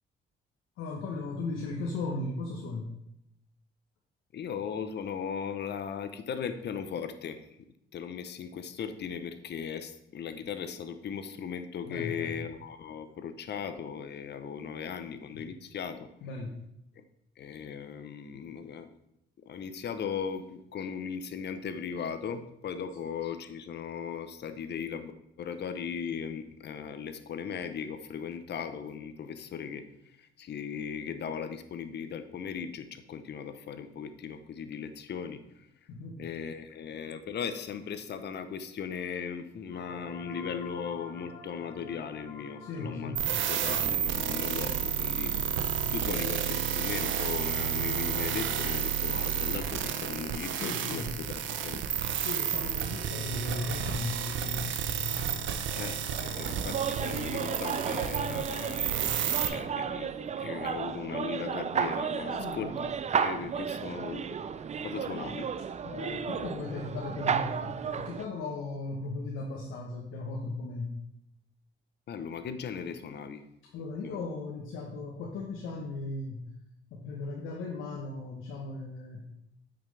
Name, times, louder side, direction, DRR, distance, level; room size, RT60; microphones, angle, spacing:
voice 1, 0.8-2.9 11.8-12.3 15.3-15.5 16.2-16.6 35.9-36.2 42.6-43.3 45.8-45.9 50.5-51.1 52.2-54.7 55.0-55.3 62.3-62.7 65.8-71.0 73.7-76.5 76.9-79.3, left 3 dB, 90° left, 0 dB, 1.1 m, -37 dB
voice 2, 4.3-7.4 7.9-16.1 17.0-17.1 17.4-18.9 19.5-25.1 25.4-29.9 30.2-35.4 36.2-43.2 43.5-45.4 45.9-51.8 55.7-56.0 56.4-60.1 60.4-64.2 64.8-65.5 72.1-73.4 74.0-74.3, left 7 dB, 60° left, 10 dB, 0.8 m, -38 dB
sound 1, 39.7-45.1, left 3 dB, 35° left, 2.9 m, -49 dB
sound 2, 43.2-59.5, right 8 dB, 75° right, 0.7 m, -31 dB
sound 3, 56.1-68.2, right 7 dB, 35° right, 0.4 m, -33 dB
8.8 x 5.9 x 3.3 m, 0.80 s
cardioid pair, 90°, 20 cm